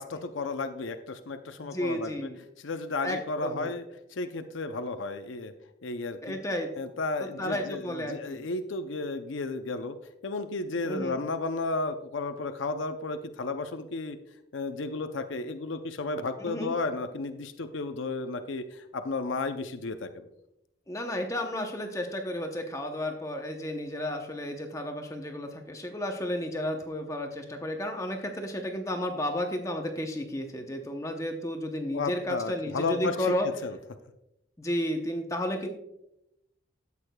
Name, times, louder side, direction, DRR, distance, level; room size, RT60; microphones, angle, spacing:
voice 1, 0.0-2.3 2.6-3.8 4.1-5.5 5.8-6.4 6.8-10.0 10.2-14.2 14.5-20.2 31.9-33.2 33.6-33.8, left 3 dB, 90° left, 8 dB, 0.6 m, -33 dB
voice 2, 1.6-2.4 3.0-3.7 6.2-6.8 7.2-8.4 10.8-11.2 16.4-16.8 20.9-33.5 34.6-35.7, left 1 dB, 15° left, 3 dB, 0.7 m, -32 dB
13.0 x 8.2 x 2.3 m, 0.84 s
head